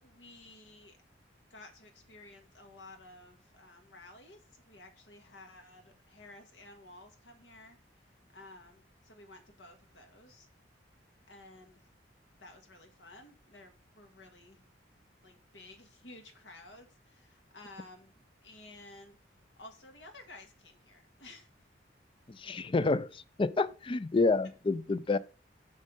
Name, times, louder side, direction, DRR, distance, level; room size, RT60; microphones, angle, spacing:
voice 1, 0.0-1.0 1.5-7.8 8.3-10.5 11.3-11.8 12.4-14.6 15.2-19.2 19.6-21.5, left 2 dB, 75° left, 1.8 m, -53 dB
voice 2, 22.3-25.2, left 3 dB, 30° left, 0.4 m, -29 dB
6.5 x 6.3 x 5.4 m
head